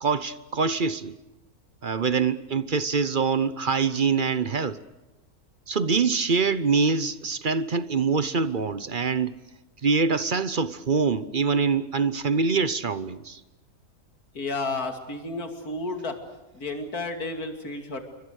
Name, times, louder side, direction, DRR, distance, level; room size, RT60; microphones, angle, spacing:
voice 1, 0.0-1.2 1.8-4.8 5.7-9.4 9.8-13.4, right 5 dB, 40° right, 0.9 m, -24 dB
voice 2, 14.3-16.2 16.5-18.0, left 2 dB, 80° left, 3.1 m, -32 dB
28.0 x 24.0 x 6.5 m
omnidirectional pair, 1.6 m